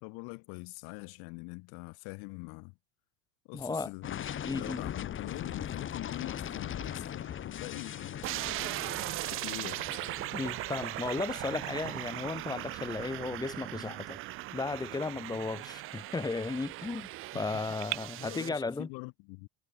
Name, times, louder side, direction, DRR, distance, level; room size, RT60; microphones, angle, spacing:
voice 1, 0.0-2.7 3.5-8.3 9.2-10.0 17.3-17.4 18.2-19.5, left 34 dB, 60° left, 1.7 m, -43 dB
voice 2, 3.5-3.9 4.4-4.8 10.3-14.2 14.5-18.9, left 3 dB, 10° left, 1.3 m, -35 dB
sound 1, 4.0-13.8, left 9 dB, 30° left, 2.0 m, -41 dB
Bird vocalization bird call bird song, 6.8-18.0, right 17 dB, 50° right, 4.0 m, -50 dB
sound 2, 8.2-18.5, right 18 dB, 35° right, 0.4 m, -39 dB
supercardioid pair, 120°, 40 cm